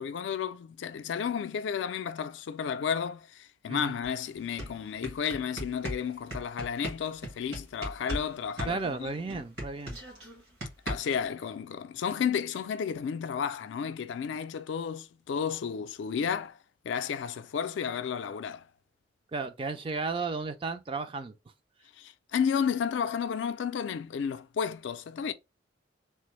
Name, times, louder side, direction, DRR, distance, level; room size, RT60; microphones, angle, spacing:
voice 1, 0.0-9.1 10.9-16.6 16.8-18.6 22.0-25.3, left 7 dB, 80° left, 0.3 m, -32 dB
sound 1, 4.0-4.1 4.4-8.3 8.6-11.3, equal, 65° right, 1.6 m, -37 dB
voice 2, 8.6-10.0 19.3-21.3, right 4 dB, 30° right, 0.3 m, -34 dB
3.3 x 2.0 x 3.0 m
head